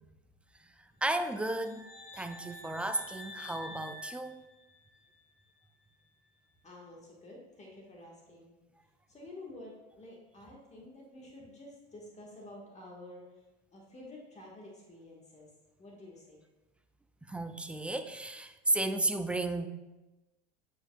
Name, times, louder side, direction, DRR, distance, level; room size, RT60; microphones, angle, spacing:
voice 1, 1.0-1.9 2.1-4.4 17.3-19.7, right 2 dB, 5° right, 9 dB, 0.3 m, -33 dB
sound 1, 1.1-5.1, left 1 dB, 50° left, 2.1 m, -49 dB
voice 2, 6.6-8.6 9.1-13.4 13.7-15.5 15.8-16.4, left 1 dB, 20° left, -2 dB, 1.6 m, -50 dB
8.6 x 7.1 x 2.3 m, 1.1 s
hypercardioid pair, 90°, 31 cm